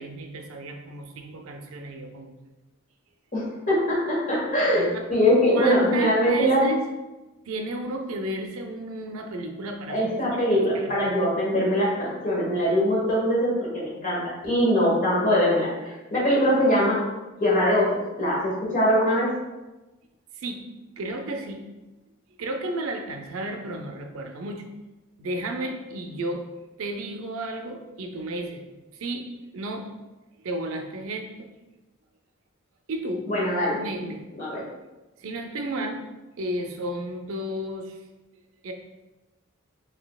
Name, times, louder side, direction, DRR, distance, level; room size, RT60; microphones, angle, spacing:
voice 1, 0.0-2.3 4.7-5.0 5.5-6.9 7.5-10.0 10.3-11.0 20.4-20.6 21.0-21.6 22.4-24.6 25.2-26.4 26.8-28.6 29.0-29.3 29.5-29.9 30.4-31.5 32.9-33.3 33.7-34.3 35.2-36.0 36.4-38.0 38.6-38.7, right 1 dB, 75° right, 4 dB, 0.4 m, -33 dB
voice 2, 3.3-6.6 9.9-17.0 17.4-19.3 33.3-33.8 34.3-34.6, equal, 40° left, -6 dB, 1.2 m, -22 dB
4.0 x 2.7 x 2.3 m, 1.1 s
head